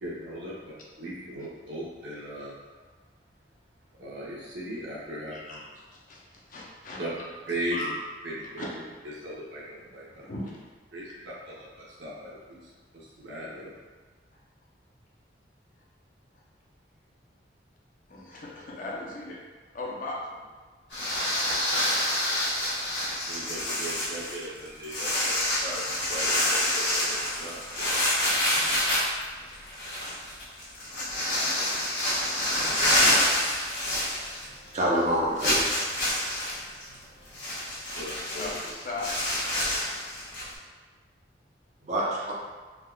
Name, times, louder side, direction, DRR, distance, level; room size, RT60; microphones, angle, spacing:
voice 1, 0.0-2.6 4.0-5.6 7.0-7.1 7.5-7.9 8.2-8.7 9.2-10.3 10.9-13.7 23.3-28.0 28.5-28.6 37.9-38.5, right 1 dB, 85° right, -6 dB, 0.8 m, -38 dB
voice 2, 5.3-7.0 7.7-7.9 8.6-8.7 10.2-10.5 18.1-19.4 19.7-20.5 30.8-31.1 32.0-32.8 34.5-34.6 38.4-39.1, left 2 dB, 50° left, -4 dB, 0.6 m, -39 dB
sound 1, 20.9-34.7 35.0-35.1 35.4-40.5, left 1 dB, 85° left, 1.1 m, -27 dB
voice 3, 34.7-35.8 36.8-37.0 41.8-42.3, equal, 40° right, -5 dB, 0.7 m, -27 dB
3.4 x 2.3 x 2.3 m, 1.4 s
head